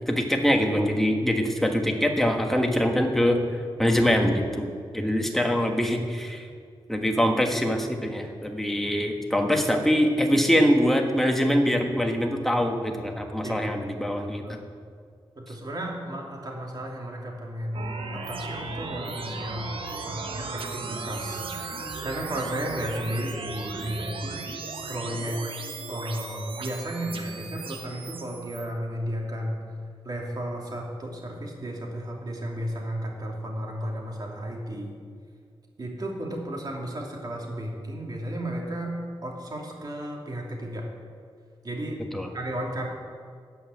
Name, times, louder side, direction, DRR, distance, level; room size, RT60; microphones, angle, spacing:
voice 1, 0.1-6.5 6.9-14.6 42.1-42.3, equal, 5° left, 3 dB, 1.4 m, -24 dB
voice 2, 15.4-19.8 20.0-24.4 24.9-25.4 25.9-29.6 30.0-34.9 35.8-40.9 41.6-42.0 42.3-42.9, right 1 dB, 45° right, -1 dB, 2.6 m, -33 dB
sound 1, 17.7-28.7, right 4 dB, 70° right, 1.2 m, -36 dB
13.0 x 5.7 x 9.0 m, 2.2 s
wide cardioid pair, 95°, 9 cm